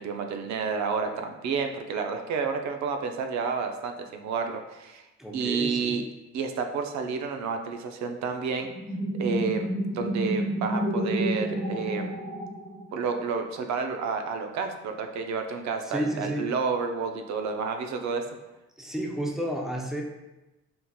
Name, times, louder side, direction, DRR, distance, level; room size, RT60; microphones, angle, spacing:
voice 1, 0.0-5.0 5.3-6.0 6.3-8.7 9.2-9.7 9.9-12.2 12.9-18.2, right 5 dB, 65° right, 5 dB, 0.4 m, -30 dB
voice 2, 5.2-6.1 15.8-16.5 18.8-20.0, right 1 dB, ahead, 0 dB, 0.4 m, -31 dB
sound 1, 8.6-13.1, right 1 dB, 20° right, 1.0 m, -30 dB
3.6 x 2.8 x 2.2 m, 1.0 s
cardioid pair, 90°, 30 cm